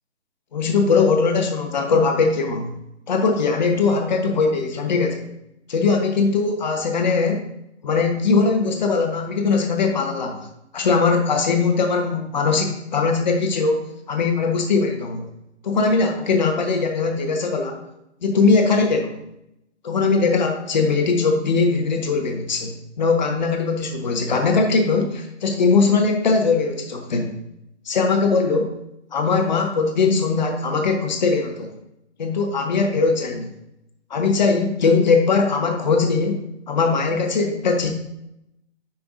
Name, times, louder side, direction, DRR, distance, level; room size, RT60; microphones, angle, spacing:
voice 1, 0.5-2.7 3.1-5.3 5.7-7.4 7.8-10.5 10.7-15.3 15.6-17.8 18.2-19.2 19.8-22.7 23.0-27.4 27.8-28.7 29.1-31.7 32.2-33.5 34.1-37.9, left 4 dB, 40° left, 3 dB, 1.4 m, -20 dB
11.5 x 5.8 x 2.7 m, 0.83 s
figure-of-eight pair, 140°, 34 cm